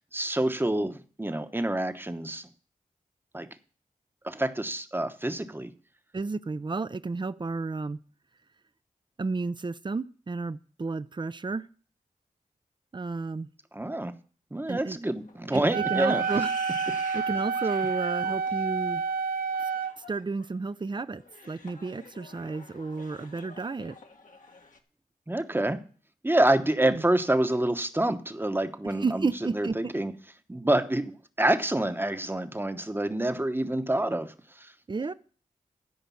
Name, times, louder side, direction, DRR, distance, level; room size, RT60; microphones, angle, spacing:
voice 1, 0.1-2.5 3.3-3.5 4.2-5.7 13.7-14.1 14.5-16.2 25.3-25.8 26.2-30.1 30.5-31.1 31.4-34.7, right 1 dB, 15° right, 9 dB, 1.0 m, -27 dB
voice 2, 6.1-8.0 9.2-11.7 12.9-13.5 14.7-15.0 15.5-16.5 17.1-19.0 20.1-24.0 26.8-27.0 29.0-29.9 34.9-35.1, right 4 dB, 30° right, 16 dB, 0.5 m, -32 dB
sound 1, 15.1-24.8, left 3 dB, 65° left, 1.4 m, -47 dB
Wind instrument woodwind instrument, 15.7-19.9, right 5 dB, 85° right, 0.6 m, -29 dB
13.5 x 5.1 x 7.1 m, 0.43 s
cardioid pair, 45°, 15 cm